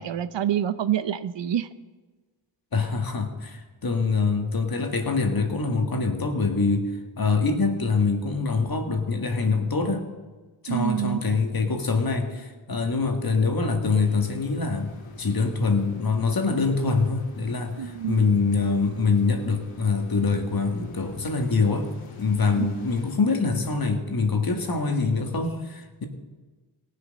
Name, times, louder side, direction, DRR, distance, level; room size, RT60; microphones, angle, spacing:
voice 1, 0.0-1.7 10.7-11.2 17.8-18.2 22.5-22.9, right 10 dB, 60° right, 13 dB, 0.7 m, -27 dB
voice 2, 2.7-10.0 10.6-21.9 22.2-26.0, left 4 dB, 45° left, 5 dB, 1.8 m, -24 dB
sound 1, 13.8-23.2, left 4 dB, 75° left, 2.0 m, -46 dB
18.0 x 6.9 x 5.3 m, 1.3 s
cardioid pair, 55°, 50 cm